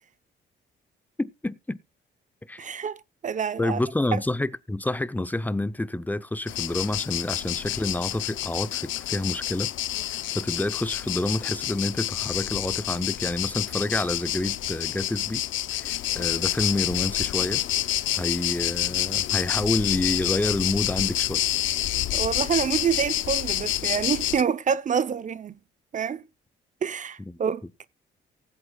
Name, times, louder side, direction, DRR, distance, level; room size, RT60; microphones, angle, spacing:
voice 1, 1.2-1.8 2.5-2.7 3.6-9.7 10.1-15.4 15.7-17.6 18.1-21.4 27.2-27.3, left 2 dB, 10° left, 0.6 m, -28 dB
voice 2, 2.6-3.8 4.1-4.2 22.1-25.5 25.9-26.2 26.8-27.8, right 7 dB, 40° right, 0.7 m, -27 dB
sound 1, 6.5-24.4, left 13 dB, 75° left, 0.6 m, -28 dB
19.0 x 8.0 x 2.3 m
cardioid pair, 90°, 20 cm